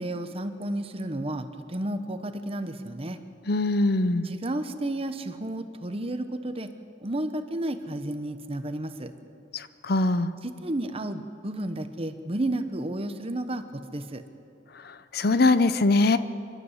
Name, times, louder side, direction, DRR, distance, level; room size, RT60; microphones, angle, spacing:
voice 1, 0.0-3.2 4.2-6.7 7.0-9.1 10.4-14.2, right 1 dB, 30° right, 9 dB, 1.1 m, -32 dB
voice 2, 3.5-4.3 9.5-10.3 15.1-16.2, left 2 dB, 55° left, 13 dB, 0.8 m, -22 dB
26.5 x 12.5 x 8.2 m, 2.6 s
head